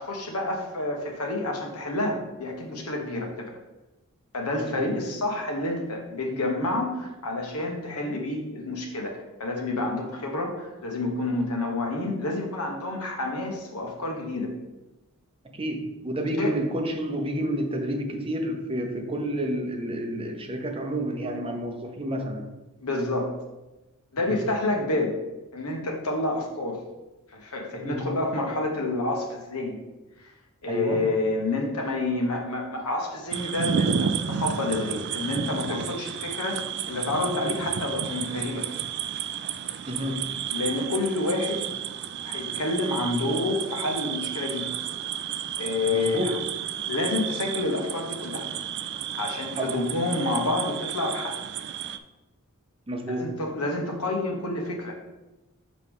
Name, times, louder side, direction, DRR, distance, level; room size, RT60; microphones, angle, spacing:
voice 1, 0.0-3.5 4.3-14.5 16.4-16.5 22.8-23.3 24.1-25.1 25.5-26.8 27.3-29.8 30.6-36.6 36.9-38.6 40.5-41.6 42.2-44.6 45.6-46.4 46.9-48.5 49.2-51.4 53.1-55.0, left 2 dB, 70° left, 1 dB, 1.2 m, -29 dB
voice 2, 4.6-5.0 15.5-22.5 24.3-24.4 27.7-28.1 30.7-31.2 39.9-40.4 45.9-46.4 49.6-49.8 52.9-53.5, right 1 dB, 25° right, 3 dB, 0.7 m, -30 dB
sound 1, 33.3-52.0, right 8 dB, 50° right, 0.4 m, -32 dB
6.6 x 5.1 x 3.6 m, 1.0 s
head